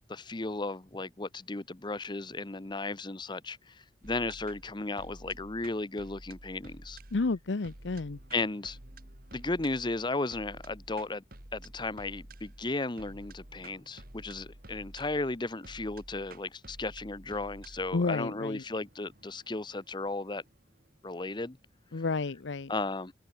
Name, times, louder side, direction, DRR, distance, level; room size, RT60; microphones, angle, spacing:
voice 1, 0.1-7.0 8.3-8.8 9.3-11.2 11.5-20.4 21.0-21.6 22.7-23.1, left 2 dB, 25° left, 0.9 m, -35 dB
sound 1, 4.0-21.2, right 1 dB, 55° right, 3.2 m, -51 dB
voice 2, 7.1-8.2 17.9-18.6 21.9-22.7, left 3 dB, 90° left, 0.7 m, -31 dB
head